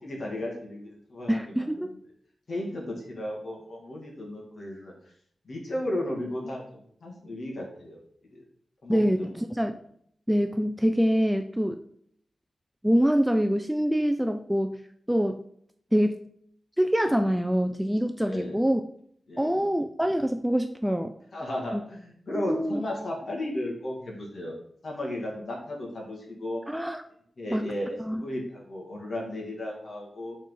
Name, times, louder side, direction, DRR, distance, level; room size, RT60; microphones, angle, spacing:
voice 1, 0.0-1.7 2.5-4.9 5.5-6.6 7.0-8.0 8.3-8.4 8.8-9.3 18.2-18.6 19.3-19.6 21.3-24.5 24.8-26.6 27.4-30.4, left 1 dB, 50° left, -1 dB, 2.1 m, -34 dB
voice 2, 1.3-1.9 8.9-9.8 10.3-11.8 12.8-14.8 15.1-15.4 15.9-16.2 16.8-18.8 19.4-21.1 21.7-21.8 22.3-22.8 26.7-27.0 27.5-27.7 28.0-28.2, equal, 5° right, 7 dB, 0.3 m, -25 dB
5.9 x 4.2 x 5.5 m, 0.64 s
wide cardioid pair, 175°, 0 cm